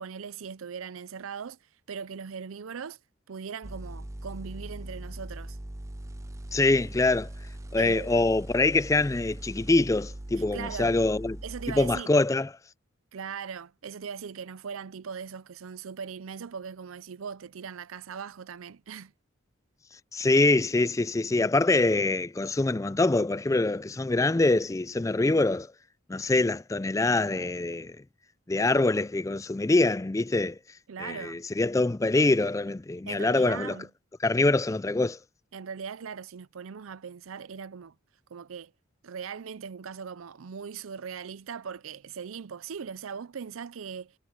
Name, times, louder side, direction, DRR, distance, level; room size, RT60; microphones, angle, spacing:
voice 1, 0.0-1.6 1.9-3.0 3.3-5.6 7.8-8.2 10.5-10.9 11.4-12.2 13.1-19.1 30.9-31.4 33.1-33.9 35.5-37.9 38.3-38.7 39.0-44.1, right 6 dB, 90° right, 0.5 m, -39 dB
sound 1, 3.6-12.0, right 1 dB, 15° right, 0.6 m, -41 dB
voice 2, 6.5-7.3 7.7-11.4 11.7-12.5 20.1-25.7 26.1-28.0 28.5-30.6 31.0-33.8 34.2-35.2, left 2 dB, 15° left, 0.3 m, -24 dB
head